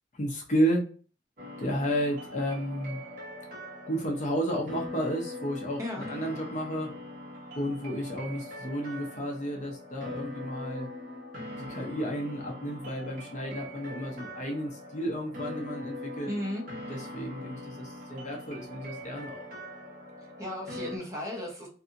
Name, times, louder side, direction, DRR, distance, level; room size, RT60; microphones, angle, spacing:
voice 1, 0.1-0.9 1.6-3.1 3.9-5.8 6.1-6.9 7.5-10.9 11.6-16.3 16.9-19.5, equal, 35° left, 0 dB, 0.5 m, -32 dB
sound 1, 1.4-21.0, left 1 dB, 40° right, 0.9 m, -42 dB
voice 2, 5.8-6.1 16.3-16.7 20.2-21.7, left 1 dB, 15° right, -2 dB, 0.8 m, -35 dB
2.7 x 2.5 x 2.5 m, 0.39 s
head